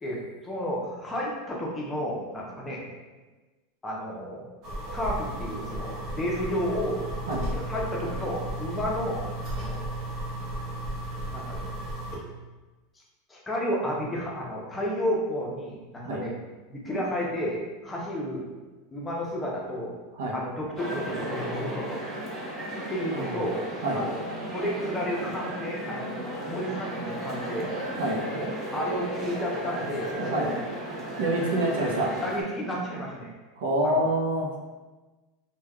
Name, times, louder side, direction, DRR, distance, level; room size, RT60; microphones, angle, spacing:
voice 1, 0.0-2.9 3.8-4.5 4.9-7.0 7.5-9.3 9.6-9.8 11.3-11.7 13.3-16.3 16.7-18.5 18.9-20.0 20.3-22.0 22.9-23.6 23.9-24.2 24.5-26.1 26.5-27.7 28.3-28.5 28.7-30.6 32.2-33.3 33.8-34.0, equal, 15° left, -3 dB, 0.7 m, -31 dB
sound 1, 4.6-12.2, right 1 dB, 50° right, 0.8 m, -34 dB
sound 2, 20.8-32.4, right 1 dB, 15° right, 0.8 m, -35 dB
voice 2, 22.7-23.4 23.8-24.0 28.0-28.2 30.2-30.5 31.2-32.1 33.6-34.6, right 1 dB, 80° right, -1 dB, 0.6 m, -27 dB
3.3 x 2.2 x 2.2 m, 1.2 s
supercardioid pair, 120°, 0 cm